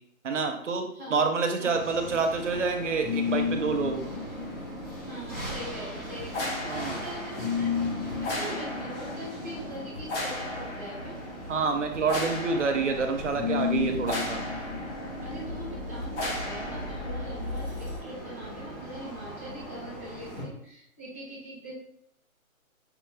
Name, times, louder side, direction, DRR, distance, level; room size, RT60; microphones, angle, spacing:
voice 1, 0.2-4.0 6.7-6.9 11.5-14.4, right 4 dB, 60° right, 4 dB, 0.7 m, -27 dB
sound 1, 1.7-20.4, right 1 dB, 15° left, 1.3 m, -41 dB
sound 2, 2.1-18.0, left 4 dB, 55° left, 1.6 m, -34 dB
voice 2, 5.0-7.7 8.2-11.2 15.2-21.7, equal, 10° right, -12 dB, 0.6 m, -41 dB
5.5 x 2.3 x 3.2 m, 0.69 s
hypercardioid pair, 170°, 42 cm